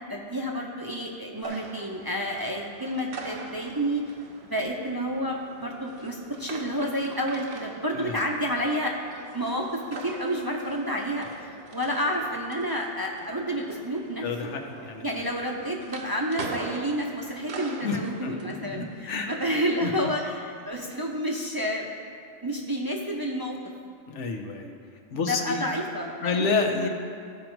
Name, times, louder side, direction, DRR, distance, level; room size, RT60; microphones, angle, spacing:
voice 1, 0.1-4.0 4.4-8.9 9.3-14.5 15.0-22.0 22.4-23.6 25.1-26.5, equal, 25° right, -1 dB, 0.5 m, -30 dB
sound 1, 1.4-20.3, right 3 dB, 65° right, 1.0 m, -43 dB
voice 2, 7.9-8.2 14.2-15.1 17.8-19.3 19.8-19.9 24.1-24.7 25.1-25.7 26.2-26.9, left 4 dB, 90° left, 3 dB, 1.2 m, -29 dB
13.5 x 5.2 x 4.5 m, 2.3 s
omnidirectional pair, 1.2 m